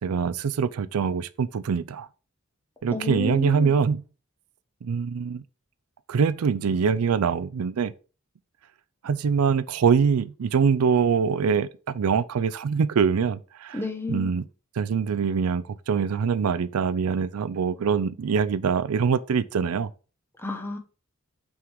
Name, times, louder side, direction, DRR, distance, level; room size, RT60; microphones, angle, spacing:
voice 1, 0.0-2.1 2.8-4.0 4.8-5.4 6.1-7.9 9.0-13.8 14.1-14.4 14.8-19.9, right 6 dB, 85° right, 0.4 m, -24 dB
voice 2, 2.9-3.7 13.7-14.4 20.4-20.8, left 2 dB, 10° left, 1.0 m, -30 dB
5.8 x 3.7 x 4.6 m
head